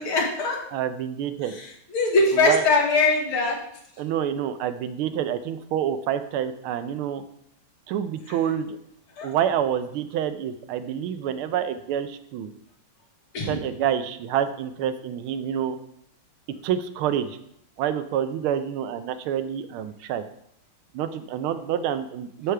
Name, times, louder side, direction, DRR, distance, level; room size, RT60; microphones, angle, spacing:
voice 1, 0.0-0.6 1.5-1.7 1.9-3.6 9.2-9.3 13.3-13.6, left 3 dB, 85° left, -1 dB, 2.5 m, -22 dB
voice 2, 0.7-1.5 2.3-2.6 4.0-7.2 7.9-8.8 9.2-12.5 13.4-15.7 16.6-17.4 17.8-20.2 20.9-22.5, right 9 dB, 85° right, 10 dB, 1.5 m, -27 dB
12.5 x 4.9 x 3.3 m, 0.73 s
omnidirectional pair, 2.3 m